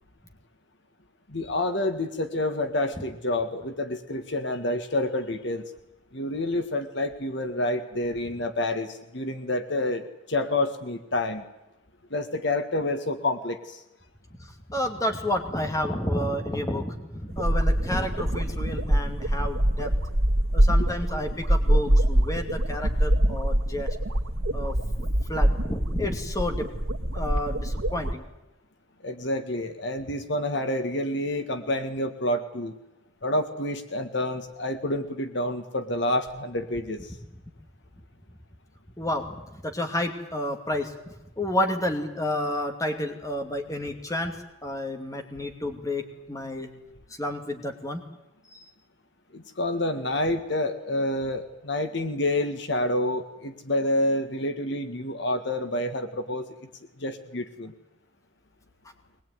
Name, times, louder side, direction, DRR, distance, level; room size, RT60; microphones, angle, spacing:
voice 1, 1.3-5.6 6.1-10.0 10.3-11.4 12.1-13.8 29.0-32.7 33.2-37.1 49.3-56.5 57.0-57.7, left 1 dB, 55° left, 8 dB, 1.8 m, -28 dB
voice 2, 14.7-19.9 20.5-23.9 24.5-26.7 27.1-28.2 39.0-39.2 39.6-40.9 41.4-44.3 44.6-46.7 47.2-48.0, left 1 dB, 15° left, 4 dB, 2.6 m, -30 dB
sound 1, 17.3-28.1, right 1 dB, 90° right, 1.8 m, -24 dB
22.5 x 21.0 x 9.5 m, 0.96 s
head